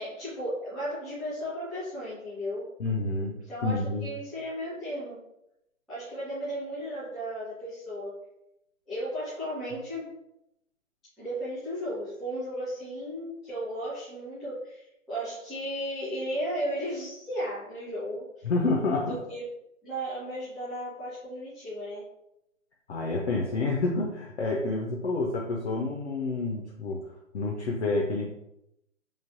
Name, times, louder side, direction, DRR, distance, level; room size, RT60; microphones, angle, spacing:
voice 1, 0.0-2.7 3.5-5.2 5.9-8.1 8.9-10.1 11.2-18.3 19.1-19.4 19.8-22.0, equal, ahead, -13 dB, 0.4 m, -35 dB
voice 2, 2.8-3.3 3.6-4.1 18.4-19.2 22.9-27.0 27.3-28.3, left 3 dB, 60° left, -1 dB, 0.5 m, -28 dB
3.1 x 2.0 x 2.5 m, 0.83 s
hypercardioid pair, 180°, 40 cm